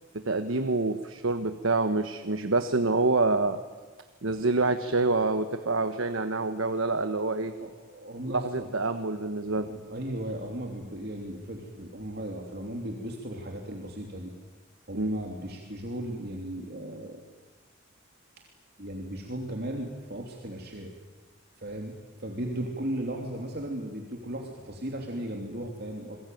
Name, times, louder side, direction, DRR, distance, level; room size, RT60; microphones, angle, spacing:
voice 1, 0.1-3.6 4.2-7.5 8.2-9.7 14.9-15.2, right 3 dB, 75° right, 9 dB, 1.3 m, -27 dB
voice 2, 7.6-8.7 9.6-14.3 14.9-17.2 18.8-20.9 21.6-26.2, right 1 dB, 50° right, 1 dB, 3.1 m, -36 dB
28.5 x 22.0 x 9.3 m, 1.3 s
head